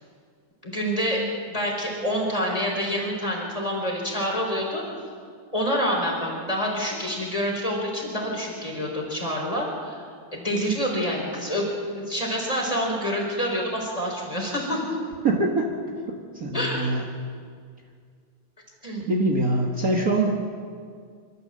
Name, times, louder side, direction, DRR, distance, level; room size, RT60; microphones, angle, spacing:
voice 1, 0.6-4.8 5.5-10.1 10.3-14.8 16.5-16.9 18.8-19.1, equal, 15° left, -1 dB, 4.6 m, -27 dB
voice 2, 15.2-15.7 16.1-17.0 19.1-20.3, right 2 dB, 45° right, -1 dB, 1.9 m, -23 dB
25.0 x 13.5 x 7.7 m, 2.1 s
omnidirectional pair, 2.3 m